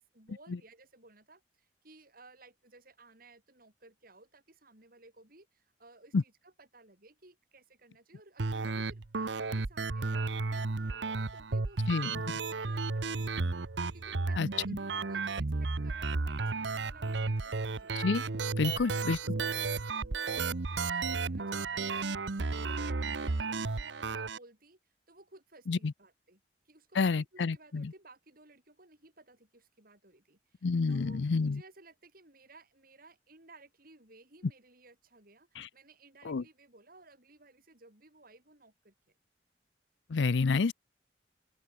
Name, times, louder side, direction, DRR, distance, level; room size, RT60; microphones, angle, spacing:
voice 1, 0.0-13.6 13.9-17.9 18.7-21.9 22.6-26.4 26.7-38.9, right 2 dB, 55° right, 7.0 m, -58 dB
sound 1, 8.4-24.4, right 3 dB, 80° right, 0.9 m, -33 dB
voice 2, 11.9-12.2 14.4-14.5 18.0-18.2 18.6-19.2 25.7-25.9 27.0-27.9 30.6-31.6 35.6-35.7 36.2-36.4 40.1-40.7, left 4 dB, 80° left, 0.5 m, -29 dB
open air
head